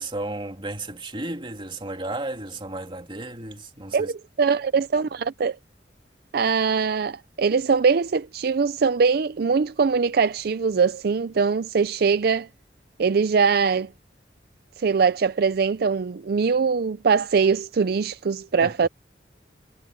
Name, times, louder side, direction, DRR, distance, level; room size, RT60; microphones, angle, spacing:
voice 1, 0.0-4.1 18.6-18.7, right 2 dB, 30° right, 2.9 m, -33 dB
voice 2, 3.9-5.6 6.3-12.5 13.0-13.9 14.8-18.9, right 5 dB, 60° right, 0.4 m, -22 dB
head